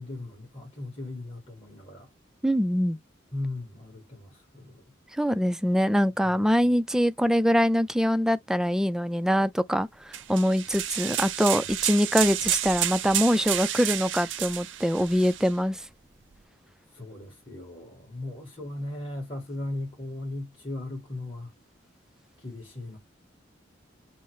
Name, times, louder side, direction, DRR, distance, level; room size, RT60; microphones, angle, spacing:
voice 1, 0.0-2.1 3.3-4.8 6.2-6.7 16.9-21.5 22.4-23.0, left 2 dB, 30° left, 1.9 m, -37 dB
voice 2, 2.4-3.0 5.2-15.9, equal, 5° right, 0.3 m, -24 dB
sound 1, 10.1-15.5, right 12 dB, 70° right, 0.6 m, -30 dB
5.5 x 2.0 x 4.8 m
head